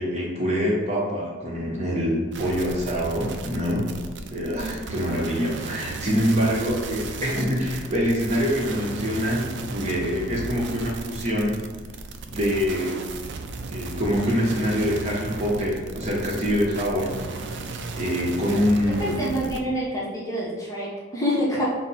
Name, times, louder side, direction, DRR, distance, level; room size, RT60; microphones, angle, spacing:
voice 1, 0.0-3.9 4.3-11.6 12.3-13.0 13.7-17.6 18.0-19.4, equal, 35° right, -3 dB, 0.9 m, -25 dB
sound 1, 2.3-19.6, right 3 dB, 60° right, 0.4 m, -35 dB
voice 2, 4.5-4.9 19.0-21.6, equal, 15° left, -5 dB, 0.7 m, -27 dB
5.7 x 2.0 x 4.2 m, 1.3 s
head